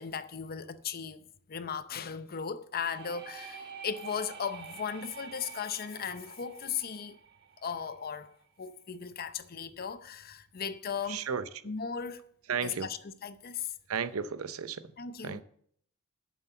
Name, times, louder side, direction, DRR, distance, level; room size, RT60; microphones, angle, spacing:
voice 1, 0.0-7.2 7.6-11.2 11.6-12.2 12.6-13.7 15.0-15.4, left 7 dB, 45° left, 0.6 m, -37 dB
sound 1, 2.8-8.4, right 7 dB, 50° right, 1.3 m, -48 dB
voice 2, 11.1-11.7 12.5-12.9 13.9-14.9 15.2-15.4, right 6 dB, 75° right, 0.6 m, -34 dB
8.6 x 7.3 x 6.7 m
head